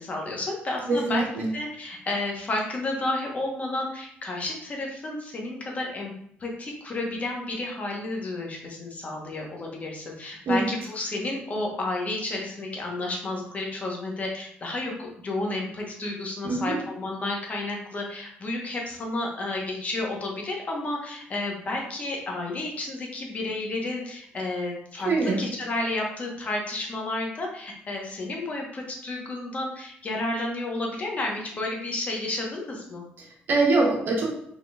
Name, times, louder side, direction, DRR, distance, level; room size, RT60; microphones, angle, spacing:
voice 1, 0.0-1.2 1.5-6.1 6.4-33.0, left 2 dB, 40° left, 0 dB, 1.0 m, -31 dB
voice 2, 0.9-1.5 10.5-10.6 16.4-16.8 25.0-25.4 33.2-34.2, right 3 dB, 60° right, -1 dB, 1.2 m, -24 dB
3.8 x 3.7 x 2.3 m, 0.69 s
cardioid pair, 90°, 4 cm